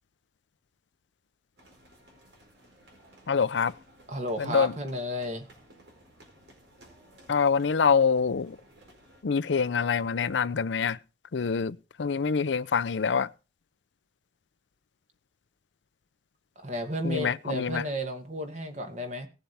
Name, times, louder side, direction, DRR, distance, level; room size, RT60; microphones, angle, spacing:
sound 1, 1.6-9.2, right 1 dB, 85° right, 4.6 m, -56 dB
voice 1, 3.3-3.7 4.4-4.7 7.3-8.6 9.2-11.0 11.3-13.3 17.0-17.8, left 6 dB, 85° left, 0.5 m, -25 dB
voice 2, 4.1-5.5 16.6-19.3, equal, 40° right, 2.1 m, -33 dB
19.0 x 7.2 x 3.5 m
head